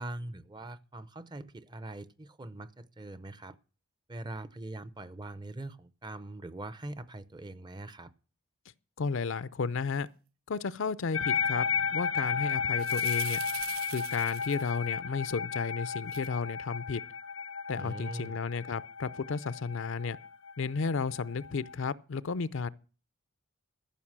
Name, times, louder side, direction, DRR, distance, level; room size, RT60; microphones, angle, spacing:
voice 1, 0.0-3.6 4.1-8.1 17.8-18.3, right 1 dB, 20° right, 0.6 m, -42 dB
voice 2, 9.0-10.1 10.5-11.7 11.9-13.4 13.9-17.0 17.7-20.2 20.6-22.7, left 5 dB, 60° left, 0.5 m, -33 dB
sound 1, 11.1-21.7, left 7 dB, 80° left, 0.9 m, -33 dB
sound 2, 12.8-14.7 16.1-16.3, right 14 dB, 80° right, 0.5 m, -42 dB
14.5 x 5.8 x 7.3 m
head